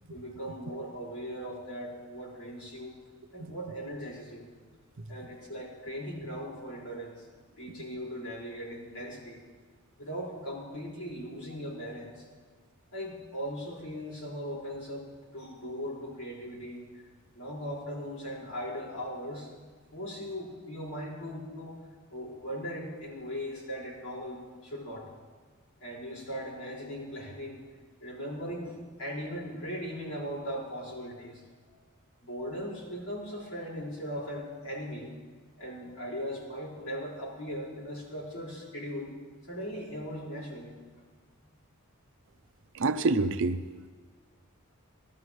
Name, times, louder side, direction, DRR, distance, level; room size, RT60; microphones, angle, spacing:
voice 1, 0.1-3.0 3.3-4.5 5.1-7.3 7.6-9.4 10.0-12.3 12.9-15.1 15.3-16.8 17.3-19.5 19.9-21.7 22.1-25.1 25.8-27.6 28.0-31.8 32.2-35.1 35.6-39.2 39.5-40.8 41.4-41.5, equal, 80° left, -5 dB, 5.1 m, -39 dB
voice 2, 42.7-43.6, right 3 dB, 60° right, 10 dB, 0.6 m, -27 dB
19.0 x 12.5 x 3.2 m, 1.5 s
head